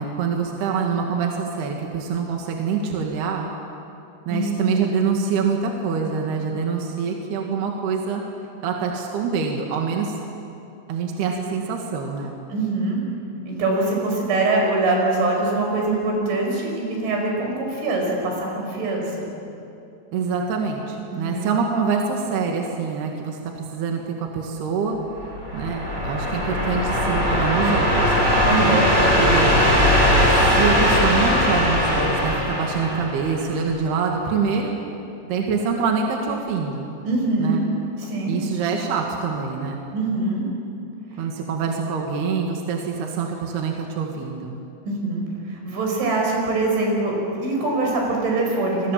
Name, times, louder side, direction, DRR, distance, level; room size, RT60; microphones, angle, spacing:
voice 1, 0.0-3.5 4.3-8.2 8.6-10.1 10.9-12.4 20.1-25.0 25.2-28.2 28.6-28.8 29.2-29.5 30.5-34.7 35.3-36.9 37.4-37.6 38.3-39.8 41.2-44.6, right 5 dB, 65° right, 1 dB, 3.7 m, -25 dB
voice 2, 4.3-4.7 12.5-13.0 13.5-19.3 21.1-21.5 28.5-28.9 37.0-37.6 38.0-38.4 39.9-40.5 44.8-48.9, right 2 dB, 80° right, 0 dB, 7.8 m, -23 dB
sound 1, 25.2-33.7, equal, 15° right, 4.4 m, -19 dB
28.5 x 23.5 x 7.4 m, 2.7 s
omnidirectional pair, 5.3 m